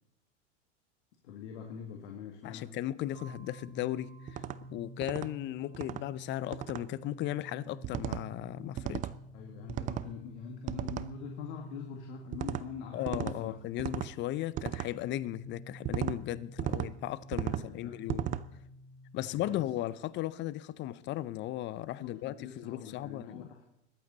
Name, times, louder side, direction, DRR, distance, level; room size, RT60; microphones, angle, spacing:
voice 1, 1.2-2.7 9.3-13.6 16.6-17.0 17.4-18.0 19.2-19.6 22.0-23.6, left 7 dB, 65° left, 1.9 m, -44 dB
voice 2, 2.4-4.4 4.7-9.1 12.9-18.4 19.1-23.5, left 14 dB, 30° left, 0.5 m, -36 dB
sound 1, 3.1-19.6, equal, 75° right, 4.7 m, -50 dB
sound 2, 4.3-4.6 5.0-5.3 5.7-6.0 6.5-6.8 7.8-8.2 8.8-9.2 9.7-10.1 10.7-11.1 12.3-12.6 13.1-13.4 13.8-14.1 14.6-14.9 15.8-16.2 16.6-16.9 17.3-17.7 18.1-18.4, right 13 dB, 25° right, 0.3 m, -35 dB
21.5 x 8.7 x 4.0 m
hypercardioid pair, 105°, 37 cm